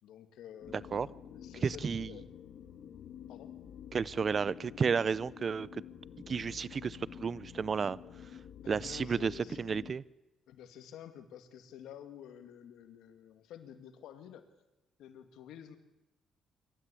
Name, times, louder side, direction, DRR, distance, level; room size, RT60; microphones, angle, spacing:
voice 1, 0.0-2.2 3.3-3.5 8.6-9.6 10.5-14.4 15.0-15.8, left 9 dB, 85° left, 8 dB, 2.2 m, -50 dB
sound 1, 0.6-9.9, left 9 dB, 70° left, 1.8 m, -49 dB
voice 2, 1.6-2.1 3.9-5.8 6.3-8.0 8.7-9.3 9.6-10.0, right 6 dB, 45° right, 21 dB, 0.6 m, -32 dB
25.5 x 13.0 x 8.4 m, 0.97 s
cardioid pair, 90°, 0 cm